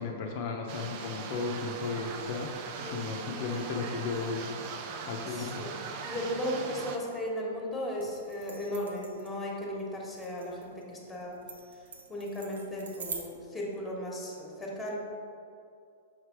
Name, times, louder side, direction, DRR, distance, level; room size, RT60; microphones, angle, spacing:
voice 1, 0.0-2.5 2.8-4.5 5.1-5.6, left 4 dB, 50° left, 0 dB, 0.6 m, -34 dB
sound 1, 0.7-7.0, right 5 dB, 45° right, 0.5 m, -40 dB
voice 2, 2.8-3.2 5.3-5.7 6.0-11.4 11.7-11.8 12.1-15.0, equal, 5° left, -3 dB, 1.3 m, -36 dB
sound 2, 8.0-13.2, right 5 dB, 90° right, 0.8 m, -45 dB
6.4 x 3.3 x 4.7 m, 2.5 s
hypercardioid pair, 135°, 0 cm